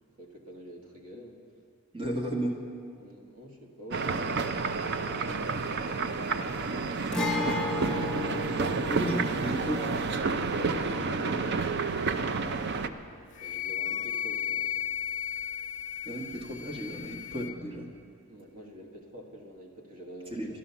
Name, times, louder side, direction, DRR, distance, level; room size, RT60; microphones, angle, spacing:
voice 1, 0.0-1.4 3.0-7.2 13.4-14.9 18.3-20.6, equal, 70° right, 1 dB, 1.8 m, -48 dB
voice 2, 1.9-2.6 8.9-9.9 16.0-17.9 20.3-20.6, equal, 25° right, -1 dB, 1.7 m, -33 dB
sound 1, 3.9-12.9, right 4 dB, 50° right, 0.5 m, -30 dB
Guitar, 7.1-14.7 15.0-15.1 17.1-17.2, left 2 dB, 5° left, 0.9 m, -36 dB
Wind instrument woodwind instrument, 13.3-17.5, left 9 dB, 35° left, 0.5 m, -34 dB
12.5 x 10.5 x 7.0 m, 2.3 s
head